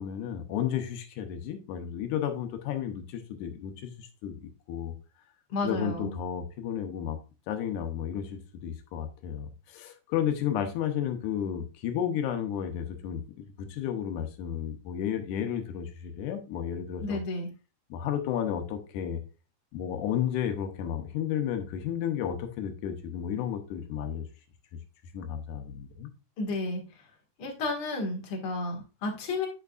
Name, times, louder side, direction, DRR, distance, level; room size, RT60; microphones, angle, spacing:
voice 1, 0.0-4.9 5.6-7.2 7.5-13.2 13.6-17.2 17.9-19.2 19.7-24.3 25.1-26.1, left 9 dB, 90° left, 6 dB, 2.3 m, -32 dB
voice 2, 5.5-6.2 17.0-17.5 26.4-26.8 27.4-29.5, left 2 dB, 50° left, 1 dB, 2.5 m, -32 dB
9.2 x 5.8 x 2.4 m, 0.30 s
omnidirectional pair, 3.4 m